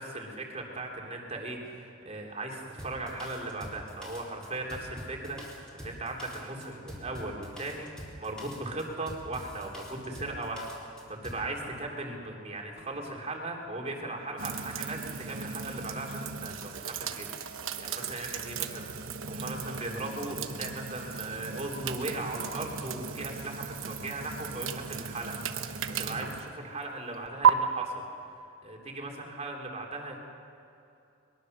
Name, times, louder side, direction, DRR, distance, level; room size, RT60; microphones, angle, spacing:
voice 1, 0.0-17.3 17.6-18.9 19.3-28.0 28.6-30.2, right 2 dB, 30° right, 0 dB, 3.3 m, -38 dB
Drum kit, 2.8-11.5, equal, 5° left, 4.0 m, -45 dB
sound 1, 14.4-27.5, right 7 dB, 65° right, 1.1 m, -34 dB
22.5 x 22.0 x 6.7 m, 2.7 s
head